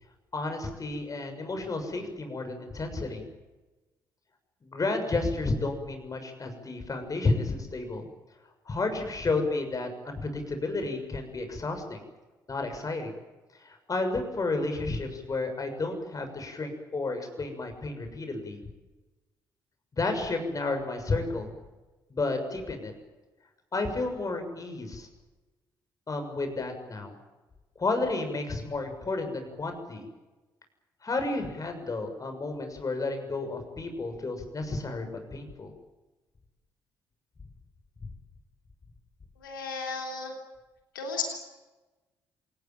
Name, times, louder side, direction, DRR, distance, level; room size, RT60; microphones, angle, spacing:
voice 1, 0.3-3.3 4.6-8.1 8.7-12.0 12.5-13.1 13.6-18.6 19.9-21.5 22.1-22.9 23.7-25.1 26.1-27.2 27.7-30.1 31.0-35.7, left 3 dB, 30° left, 6 dB, 6.8 m, -31 dB
voice 2, 39.4-40.3 40.9-41.4, left 4 dB, 80° left, 3 dB, 3.4 m, -34 dB
27.0 x 19.0 x 9.3 m, 1.2 s
figure-of-eight pair, 45°, 11 cm